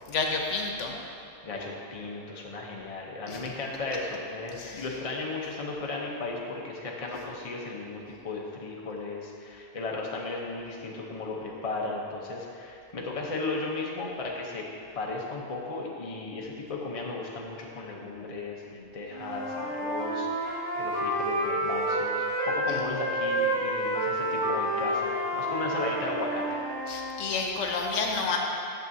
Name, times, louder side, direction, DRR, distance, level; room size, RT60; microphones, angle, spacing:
voice 1, 0.1-1.0 3.3-3.4 4.6-4.8 22.7-22.8 26.9-28.4, left 4 dB, 90° left, 1 dB, 1.1 m, -30 dB
voice 2, 1.4-14.6 14.9-26.6, left 3 dB, 35° left, -2 dB, 0.8 m, -35 dB
Wind instrument woodwind instrument, 19.1-22.6 22.9-27.2, right 1 dB, 30° right, 1.9 m, -29 dB
9.0 x 6.8 x 2.7 m, 2.6 s
omnidirectional pair, 1.2 m